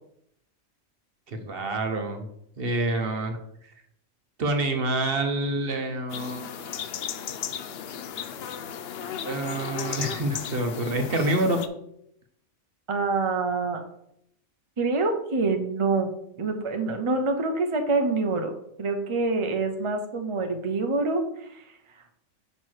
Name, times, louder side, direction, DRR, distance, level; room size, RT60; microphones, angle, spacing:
voice 1, 1.3-2.3 2.6-3.4 4.4-6.8 9.2-11.6, right 2 dB, 50° right, 5 dB, 1.0 m, -27 dB
sound 1, 6.1-11.7, left 8 dB, 60° left, 0.7 m, -35 dB
voice 2, 12.9-13.8 14.8-16.1 16.4-21.7, right 3 dB, 30° right, 5 dB, 0.6 m, -26 dB
5.5 x 4.6 x 6.3 m, 0.76 s
omnidirectional pair, 1.4 m